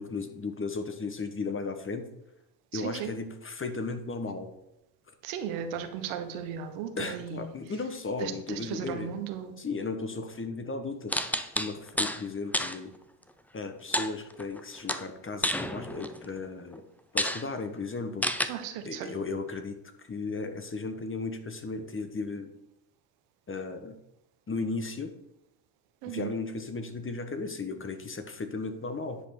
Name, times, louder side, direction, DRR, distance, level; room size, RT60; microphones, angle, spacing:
voice 1, 0.0-2.1 2.7-4.5 7.0-9.1 9.6-12.9 13.5-16.9 17.1-18.5 18.8-22.5 23.5-24.0 24.5-25.1 26.1-29.2, left 3 dB, 25° left, 8 dB, 1.3 m, -35 dB
voice 2, 2.7-3.1 5.2-7.5 8.2-9.5 18.5-19.1 26.0-26.3, right 8 dB, 80° right, 7 dB, 1.4 m, -36 dB
sound 1, 11.1-12.2 12.5-12.8 13.9-14.6 14.9-16.2 16.7-16.8 17.2-17.4 18.2-18.5, left 1 dB, 5° left, 0.7 m, -29 dB
9.9 x 5.2 x 6.0 m, 0.86 s
supercardioid pair, 80°, 49 cm